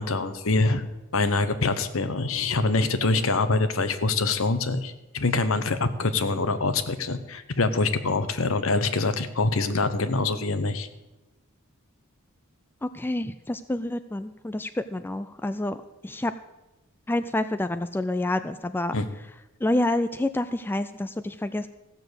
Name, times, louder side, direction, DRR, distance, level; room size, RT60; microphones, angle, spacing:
voice 1, 0.0-10.9 18.9-19.1, left 3 dB, 65° left, 11 dB, 1.0 m, -25 dB
voice 2, 12.8-15.8 16.0-16.3 17.1-18.9 19.6-21.7, left 1 dB, 10° left, 10 dB, 0.3 m, -28 dB
15.0 x 7.0 x 8.1 m, 1.0 s
head